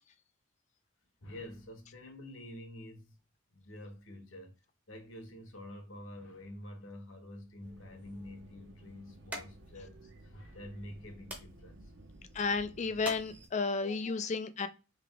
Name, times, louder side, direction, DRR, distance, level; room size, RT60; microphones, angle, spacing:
voice 1, 1.2-3.2 3.5-4.5 4.9-11.9 13.8-14.2, left 1 dB, 65° left, 1.1 m, -48 dB
sound 1, 7.6-13.9, right 1 dB, 10° right, 0.7 m, -50 dB
sound 2, 7.6-13.5, right 1 dB, 55° right, 0.7 m, -55 dB
voice 2, 12.3-14.7, left 4 dB, 35° left, 0.3 m, -32 dB
3.4 x 2.8 x 3.4 m
head